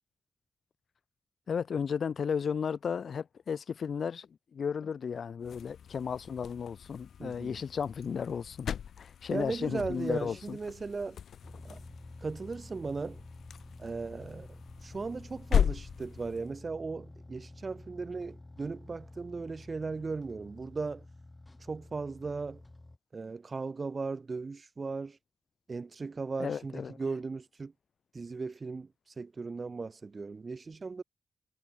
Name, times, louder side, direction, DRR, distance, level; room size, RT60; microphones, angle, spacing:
voice 1, 1.5-10.6 26.4-27.0, left 6 dB, 65° left, 2.2 m, -34 dB
sound 1, 5.4-16.5, left 8 dB, 90° left, 2.7 m, -37 dB
voice 2, 7.2-7.6 9.3-11.2 11.6-11.8 12.2-13.2 13.8-14.5 14.8-21.0 21.6-22.6 23.1-25.2 25.7-27.7 28.1-28.9 29.2-31.0, right 4 dB, 40° right, 1.7 m, -37 dB
sound 2, 11.4-23.0, left 2 dB, 20° left, 3.6 m, -50 dB
wide cardioid pair, 105°, 0 cm